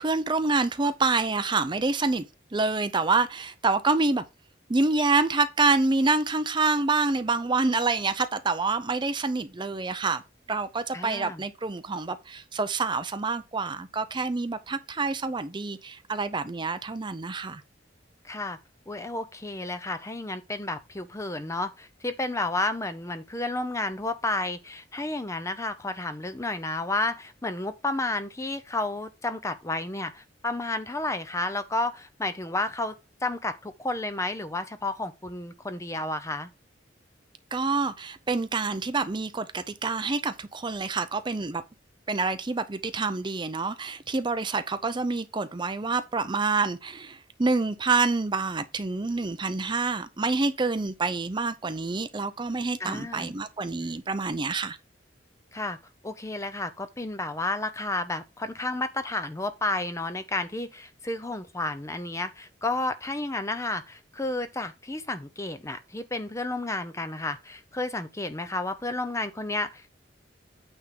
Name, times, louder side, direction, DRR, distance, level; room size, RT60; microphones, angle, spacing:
voice 1, 0.0-2.3 2.5-4.2 4.7-10.2 10.5-17.6 37.5-41.6 42.1-54.8, right 3 dB, 25° right, 0.6 m, -27 dB
voice 2, 10.9-11.4 18.2-18.6 18.9-32.9 33.2-36.5 52.8-53.4 55.5-55.8 56.0-69.9, left 2 dB, 15° left, 0.7 m, -31 dB
9.0 x 3.5 x 5.9 m
head